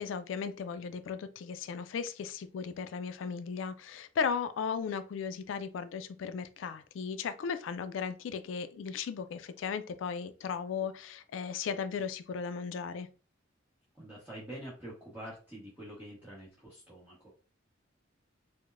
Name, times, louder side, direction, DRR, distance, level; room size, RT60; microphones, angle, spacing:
voice 1, 0.0-13.1, left 6 dB, 70° left, 0.3 m, -36 dB
voice 2, 13.9-17.3, right 1 dB, 10° right, 1.1 m, -46 dB
4.6 x 2.1 x 2.5 m
head